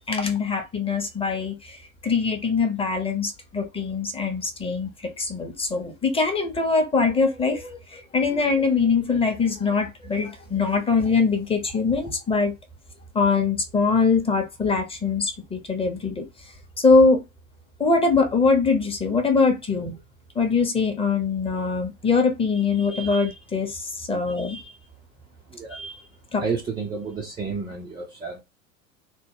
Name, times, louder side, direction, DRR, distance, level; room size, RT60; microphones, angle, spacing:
voice 1, 0.1-12.5 13.1-16.2 16.8-17.2 17.8-19.9 20.3-24.7 25.7-26.0 26.3-26.4, left 4 dB, 15° left, 0.7 m, -23 dB
voice 2, 26.4-28.4, right 5 dB, 10° right, 0.4 m, -31 dB
3.0 x 2.1 x 3.5 m
figure-of-eight pair, 80°, 41 cm